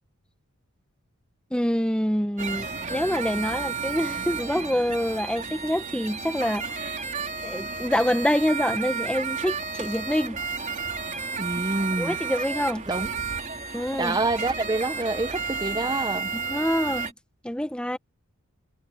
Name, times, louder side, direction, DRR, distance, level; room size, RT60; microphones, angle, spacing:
voice 1, 1.5-7.0 7.4-10.4 12.0-12.8 13.7-14.2 16.3-17.1 17.4-18.0, equal, 5° left, 1.2 m, -26 dB
sound 1, 2.4-17.1, right 5 dB, 35° right, 3.8 m, -32 dB
voice 2, 11.4-12.2 12.9-13.1 14.0-16.3, right 2 dB, 20° right, 0.9 m, -27 dB
head